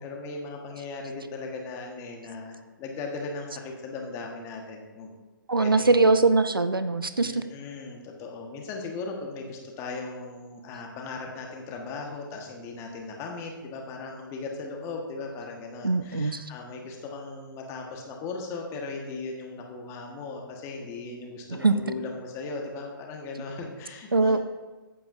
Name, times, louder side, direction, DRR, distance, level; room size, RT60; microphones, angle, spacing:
voice 1, 0.0-5.1 5.6-6.1 7.2-24.4, left 3 dB, 25° left, 1 dB, 1.4 m, -38 dB
voice 2, 5.5-7.4 15.8-16.5 21.5-21.7 24.1-24.4, right 3 dB, 85° right, 11 dB, 0.6 m, -22 dB
14.5 x 8.5 x 2.7 m, 1.2 s
figure-of-eight pair, 120°, 12 cm